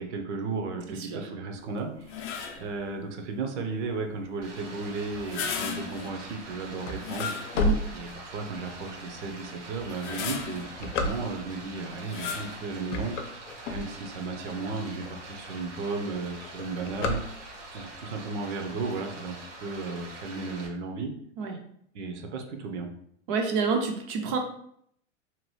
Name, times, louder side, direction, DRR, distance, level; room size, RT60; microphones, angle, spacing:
voice 1, 0.0-7.3 7.9-13.1 13.7-17.2 17.7-19.4 19.6-21.1 21.9-22.9, right 3 dB, 70° right, 4 dB, 0.8 m, -34 dB
sound 1, 2.0-2.8 5.1-6.2 7.0-7.9 8.5-8.6 9.8-10.8 12.1-12.6, left 6 dB, 40° left, 0.5 m, -35 dB
Stream, 4.4-20.7, right 2 dB, 85° right, 1.3 m, -44 dB
sound 2, 6.8-8.6 9.2-9.3 10.0-11.7 12.3-12.5 12.8-14.4 14.9-15.0 15.2-15.3 15.6-15.9 16.2-17.8, left 2 dB, 90° left, 0.6 m, -31 dB
voice 2, 23.3-24.4, right 5 dB, 30° right, 4 dB, 0.4 m, -28 dB
2.9 x 2.3 x 3.1 m, 0.68 s
supercardioid pair, 145°, 36 cm